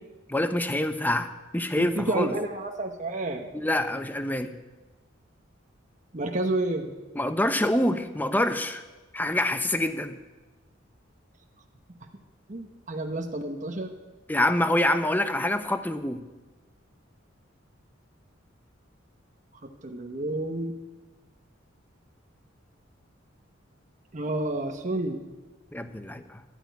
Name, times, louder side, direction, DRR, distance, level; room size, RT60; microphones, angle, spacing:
voice 1, 0.3-2.3 3.5-4.5 7.2-8.8 9.1-10.2 14.3-16.2 25.7-26.4, left 1 dB, 10° left, 9 dB, 0.7 m, -26 dB
voice 2, 1.8-3.5 6.1-6.9 12.5-14.0 19.8-20.7 24.1-25.2, right 2 dB, 40° right, 3 dB, 1.1 m, -30 dB
12.0 x 8.8 x 9.3 m, 1.2 s
head